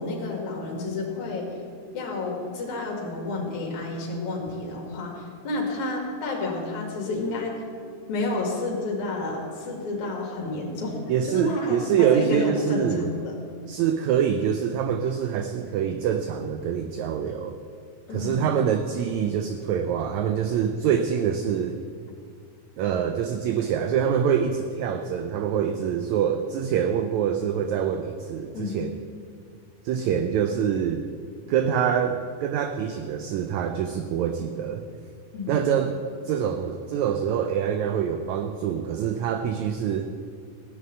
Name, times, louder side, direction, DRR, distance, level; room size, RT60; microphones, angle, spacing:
voice 1, 0.0-1.5 1.9-7.5 8.1-11.0 11.2-13.4 18.1-18.4 28.5-28.8 35.3-35.7, left 2 dB, 65° left, -1 dB, 3.5 m, -30 dB
voice 2, 11.1-13.1 13.7-17.6 18.1-21.8 22.8-29.0 29.9-31.0 31.5-34.8 35.5-36.0 36.3-40.1, right 8 dB, 80° right, 7 dB, 1.7 m, -25 dB
16.0 x 6.6 x 9.2 m, 2.2 s
omnidirectional pair, 3.8 m